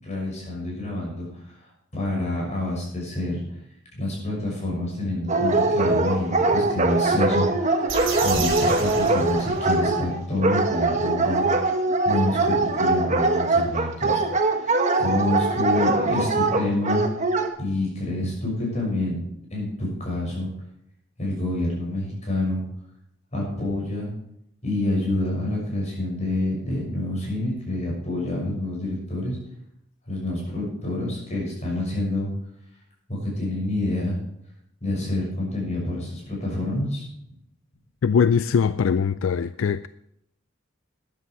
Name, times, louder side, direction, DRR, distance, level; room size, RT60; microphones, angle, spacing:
voice 1, 0.0-1.6 1.9-3.4 3.9-17.0 17.6-19.2 19.5-20.5 21.2-22.6 23.3-24.1 24.6-29.4 30.1-32.3 33.1-34.2 34.8-37.1, left 1 dB, 35° left, 6.4 m, -28 dB
Dog, 5.3-17.5, right 3 dB, 35° right, 1.3 m, -22 dB
sound 1, 7.9-10.0, right 5 dB, 65° right, 3.9 m, -31 dB
voice 2, 38.0-39.9, left 6 dB, 75° left, 0.4 m, -21 dB
13.5 x 10.5 x 4.7 m
head